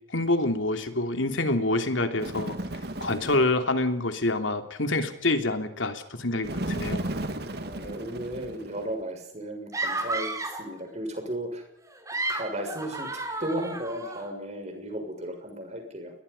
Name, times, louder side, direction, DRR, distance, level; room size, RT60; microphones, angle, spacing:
voice 1, 0.1-2.6 3.0-7.1, left 2 dB, 90° left, 7 dB, 3.1 m, -26 dB
Bird, 2.2-3.6 6.4-9.0, right 1 dB, 55° right, 2.6 m, -34 dB
voice 2, 7.6-11.6 12.3-16.1, right 1 dB, 35° right, 5 dB, 6.7 m, -35 dB
sound 1, 9.7-10.7 11.9-14.3, right 2 dB, 15° right, 3.7 m, -32 dB
29.5 x 21.5 x 5.6 m, 0.76 s
head